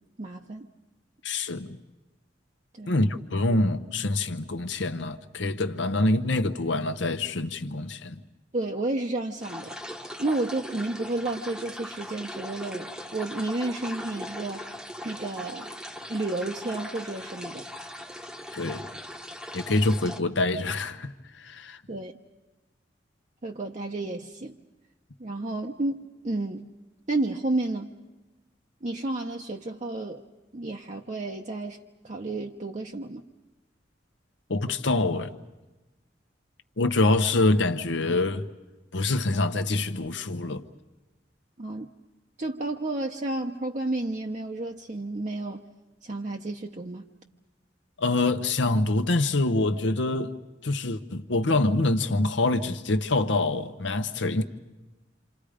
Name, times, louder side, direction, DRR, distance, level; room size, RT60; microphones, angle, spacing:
voice 1, 0.2-0.7 2.7-2.9 8.5-9.8 10.2-14.7 15.0-15.7 16.1-17.6 21.9-22.1 23.4-24.6 25.2-26.6 27.1-27.9 28.8-30.2 30.5-33.2 41.6-41.9 42.4-45.7 46.0-47.1, right 2 dB, 40° right, 0.8 m, -31 dB
voice 2, 1.2-1.8 2.9-8.2 18.5-18.9 19.5-21.8 34.5-35.4 36.8-38.5 38.9-40.6 48.0-50.3 50.6-54.4, left 2 dB, 75° left, 1.0 m, -25 dB
sound 1, 9.4-20.2, left 1 dB, 5° right, 0.9 m, -39 dB
27.5 x 27.5 x 5.1 m
head